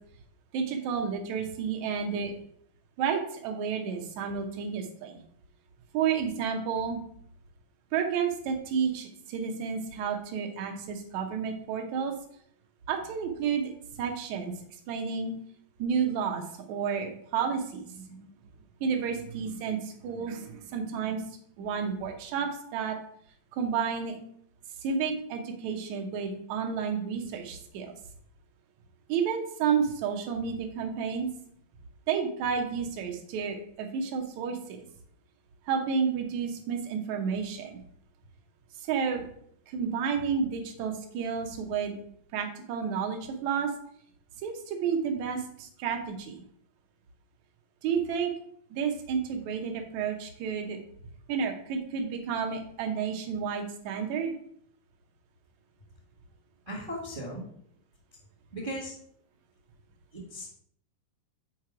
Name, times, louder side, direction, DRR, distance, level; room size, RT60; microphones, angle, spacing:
voice 1, 0.5-2.3 3.0-5.2 5.9-7.0 7.9-12.1 12.9-13.7 14.0-14.5 14.9-15.3 15.8-18.3 18.8-21.2 21.6-23.0 23.5-24.2 24.8-27.9 29.1-31.3 32.1-34.6 35.7-37.8 38.9-39.3 39.7-42.0 42.3-43.7 44.4-46.4 47.8-48.3 48.7-50.8 51.3-54.3, right 6 dB, 65° right, 3 dB, 2.0 m, -31 dB
voice 2, 56.7-57.4 58.5-58.9 60.1-60.5, equal, 40° right, -3 dB, 0.7 m, -37 dB
6.6 x 4.6 x 4.7 m, 0.65 s
omnidirectional pair, 4.0 m